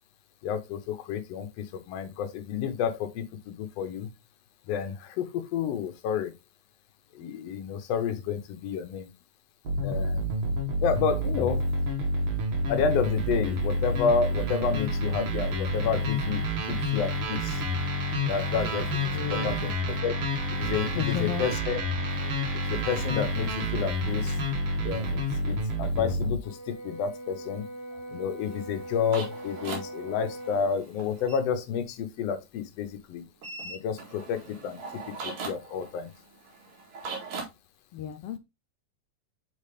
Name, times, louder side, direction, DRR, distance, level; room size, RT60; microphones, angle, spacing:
voice 1, 0.4-4.1 4.7-6.3 7.2-9.1 9.8-10.4 10.8-11.6 12.7-17.6 18.3-20.1 20.5-21.8 22.5-24.4 24.8-27.6 28.1-33.2 33.6-34.8 35.2-36.1, left 7 dB, 65° left, 1.9 m, -30 dB
sound 1, 9.6-26.4, equal, 50° right, 1.7 m, -29 dB
voice 2, 19.1-19.7 20.9-21.5 27.9-28.0 30.0-30.1 37.9-38.4, left 8 dB, 80° left, 1.3 m, -34 dB
Brass instrument, 26.4-30.7, right 1 dB, 35° left, 1.5 m, -41 dB
sound 2, 28.4-31.4 33.4-37.4, right 4 dB, 75° right, 3.2 m, -40 dB
7.5 x 4.0 x 3.3 m
omnidirectional pair, 3.4 m